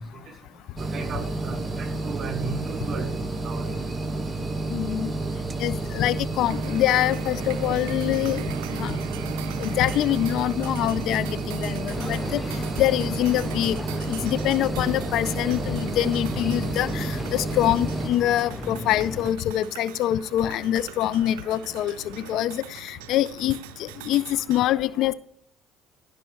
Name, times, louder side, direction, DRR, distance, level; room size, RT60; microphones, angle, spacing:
sound 1, 0.8-18.1, right 2 dB, 25° right, 0.9 m, -30 dB
voice 1, 0.9-3.1 3.4-3.6, right 5 dB, 45° right, 6 dB, 2.0 m, -35 dB
voice 2, 4.7-5.1 5.6-8.4 8.7-9.0 9.6-12.4 12.8-13.8 14.1-25.1, left 13 dB, 65° left, 18 dB, 0.3 m, -25 dB
sound 2, 6.5-24.6, right 14 dB, 85° right, 0.4 m, -41 dB
sound 3, 11.9-19.3, left 2 dB, 20° left, 0.9 m, -36 dB
14.5 x 5.3 x 3.1 m, 0.66 s
hypercardioid pair, 70°, 0 cm